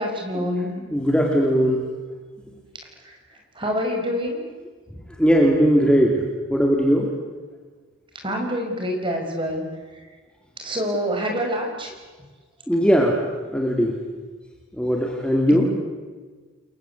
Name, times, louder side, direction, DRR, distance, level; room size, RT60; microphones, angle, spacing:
voice 1, 0.0-0.7 3.6-4.4 8.2-9.6 10.6-11.9 15.5-15.7, equal, 25° right, 2 dB, 5.4 m, -26 dB
voice 2, 0.9-1.9 2.5-2.6 5.2-6.2 6.5-7.1 12.7-13.2 13.5-14.0 14.7-15.7, equal, 5° left, 0 dB, 2.9 m, -19 dB
30.0 x 22.5 x 8.4 m, 1.4 s
head